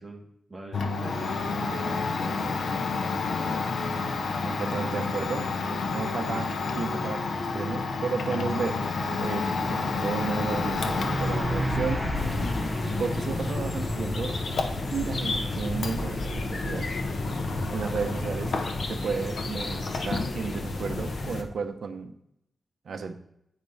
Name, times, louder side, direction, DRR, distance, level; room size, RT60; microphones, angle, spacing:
voice 1, 0.0-2.7 3.1-3.7, right 2 dB, 20° right, -1 dB, 1.7 m, -42 dB
Domestic sounds home sounds, 0.7-19.1 19.3-20.4, left 4 dB, 85° left, 0.8 m, -31 dB
voice 2, 4.4-5.5 5.9-8.8 9.2-12.0 13.0-14.4 14.9-16.9 17.7-18.5 18.9-22.1 22.8-23.1, right 5 dB, 70° right, 7 dB, 0.7 m, -33 dB
Truck, 8.8-21.5, equal, 5° left, 1.0 m, -35 dB
sound 1, 12.1-21.4, left 2 dB, 55° left, 0.9 m, -32 dB
9.3 x 5.1 x 4.1 m, 0.76 s
wide cardioid pair, 170°, 0 cm